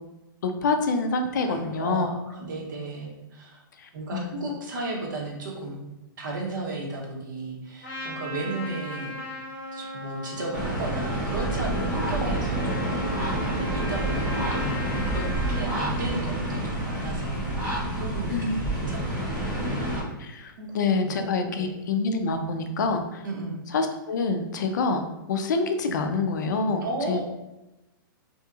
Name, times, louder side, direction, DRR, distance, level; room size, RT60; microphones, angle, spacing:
voice 1, 0.4-2.1 3.8-4.4 18.3-18.6 20.2-23.2 23.7-25.0 25.3-26.8 27.1-27.2, left 4 dB, 55° left, 6 dB, 0.4 m, -26 dB
voice 2, 1.4-3.6 3.9-5.8 6.2-9.4 9.7-12.9 13.3-14.8 15.1-15.2 15.5-17.6 17.9-19.8 20.6-21.9 22.2-22.4 23.2-23.6 26.8-27.2, right 2 dB, 60° right, -1 dB, 0.8 m, -35 dB
Trumpet, 7.8-15.7, left 1 dB, 25° left, 0.8 m, -37 dB
sound 1, 10.5-20.0, right 1 dB, 10° right, 0.5 m, -28 dB
2.7 x 2.6 x 2.4 m, 0.98 s
hypercardioid pair, 175°, 12 cm